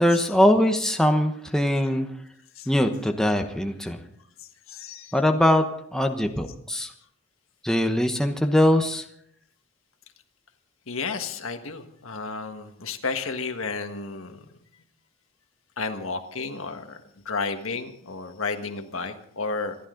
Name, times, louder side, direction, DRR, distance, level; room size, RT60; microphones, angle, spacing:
voice 1, 0.0-2.1 2.7-4.0 5.1-5.6 5.9-6.9 7.6-9.0, left 1 dB, 5° left, 4 dB, 1.0 m, -21 dB
voice 2, 4.4-5.1 10.9-14.4 15.8-17.0 17.2-19.8, left 4 dB, 80° left, 6 dB, 1.6 m, -32 dB
26.0 x 11.5 x 3.9 m, 0.68 s
head